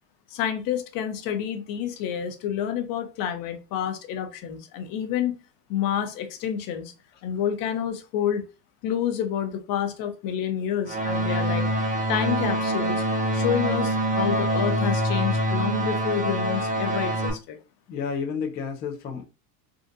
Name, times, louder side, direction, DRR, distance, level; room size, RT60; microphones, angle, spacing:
voice 1, 0.3-5.4 5.7-6.9 7.2-8.4 8.8-11.7 12.1-13.0 13.3-17.6, left 9 dB, 45° left, 7 dB, 0.8 m, -28 dB
sound 1, 10.9-17.3, right 1 dB, 15° right, 0.7 m, -25 dB
voice 2, 17.9-19.3, left 6 dB, 20° left, 0 dB, 0.4 m, -31 dB
3.6 x 2.5 x 2.6 m, 0.30 s
supercardioid pair, 120°, 48 cm